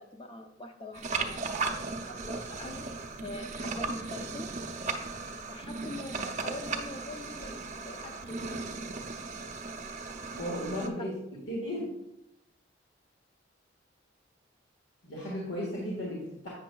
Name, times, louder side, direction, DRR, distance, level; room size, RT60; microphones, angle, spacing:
voice 1, 0.0-1.5 2.1-2.8 3.2-4.5 5.5-8.8 11.0-11.1, left 1 dB, 30° left, 5 dB, 0.6 m, -43 dB
sound 1, 0.9-10.9, right 4 dB, 40° right, 0.5 m, -36 dB
voice 2, 10.3-11.1 11.5-11.9 15.0-16.5, equal, 80° left, -5 dB, 1.5 m, -35 dB
8.2 x 6.2 x 2.3 m, 0.89 s
head